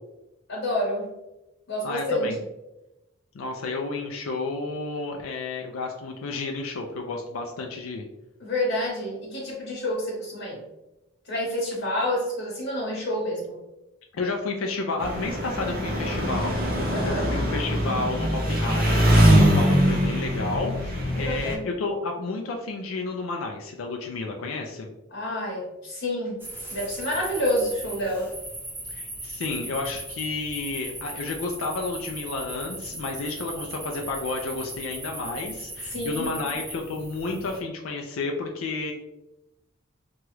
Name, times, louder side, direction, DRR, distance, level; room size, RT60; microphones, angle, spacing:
voice 1, 0.5-1.1 1.7-2.3 8.4-10.7 11.2-13.6 16.9-17.3 21.1-21.7 25.1-26.4 26.7-28.3 35.8-36.4, left 1 dB, 65° left, -5 dB, 1.0 m, -28 dB
voice 2, 1.8-2.4 3.3-8.0 14.1-24.9 28.9-38.9, left 3 dB, 85° left, 2 dB, 0.4 m, -31 dB
Engine, 15.0-21.6, equal, 45° right, 0.6 m, -22 dB
sound 1, 26.4-37.6, right 1 dB, 10° right, 0.8 m, -38 dB
2.9 x 2.3 x 3.1 m, 0.96 s
head